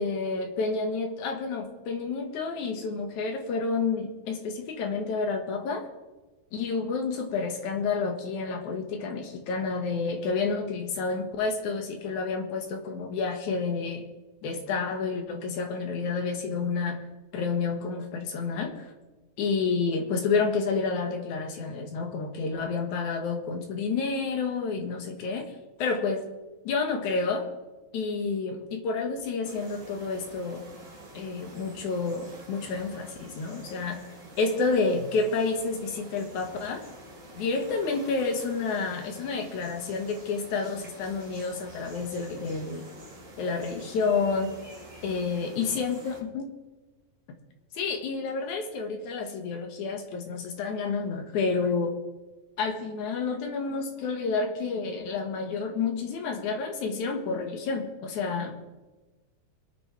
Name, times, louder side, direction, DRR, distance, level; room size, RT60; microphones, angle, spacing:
voice 1, 0.0-5.9 6.5-14.1 14.4-17.0 17.3-18.9 19.4-25.5 25.8-26.3 26.6-27.5 27.9-30.6 31.1-34.0 34.4-36.8 37.4-42.9 43.4-44.5 45.0-46.5 47.7-52.0 52.6-58.6, left 4 dB, 85° left, 3 dB, 2.9 m, -29 dB
sound 1, 29.4-46.2, right 1 dB, 30° right, 3.3 m, -47 dB
26.0 x 9.2 x 3.2 m, 1.2 s
omnidirectional pair, 3.3 m